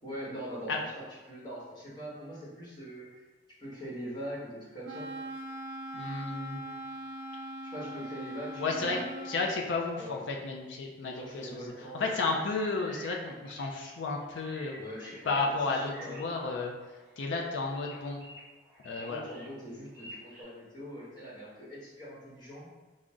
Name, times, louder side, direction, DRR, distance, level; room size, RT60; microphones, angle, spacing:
voice 1, 0.0-3.3 3.6-5.1 7.7-9.1 10.0-10.3 11.0-12.1 14.7-16.2 19.0-22.7, equal, 25° left, -7 dB, 1.2 m, -42 dB
Wind instrument woodwind instrument, 4.8-9.4, right 1 dB, 80° right, 0.4 m, -41 dB
voice 2, 5.9-6.6 8.6-14.8 15.3-16.7 17.2-18.2 18.8-19.2, left 3 dB, 85° left, 0 dB, 0.4 m, -32 dB
sound 1, 11.7-20.4, equal, 20° right, 1.5 m, -51 dB
3.8 x 2.1 x 3.5 m, 1.2 s
head